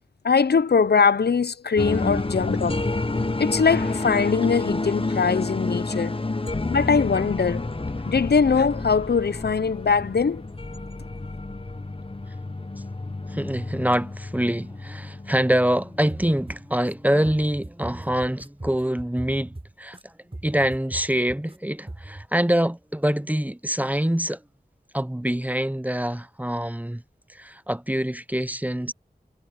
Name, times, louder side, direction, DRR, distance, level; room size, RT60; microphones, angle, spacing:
voice 1, 0.2-2.8 3.4-6.1 6.7-7.7 8.1-10.4, left 5 dB, 75° left, 0.6 m, -21 dB
sound 1, 1.8-16.9, left 2 dB, 35° left, 1.1 m, -30 dB
voice 2, 13.3-19.5 19.8-20.1 20.4-24.4 24.9-27.0 27.3-28.9, equal, 10° right, 0.8 m, -25 dB
sound 2, 16.1-16.9 17.2-20.0 20.3-21.6 21.9-22.3, right 1 dB, 35° right, 4.4 m, -39 dB
wide cardioid pair, 45°, 17 cm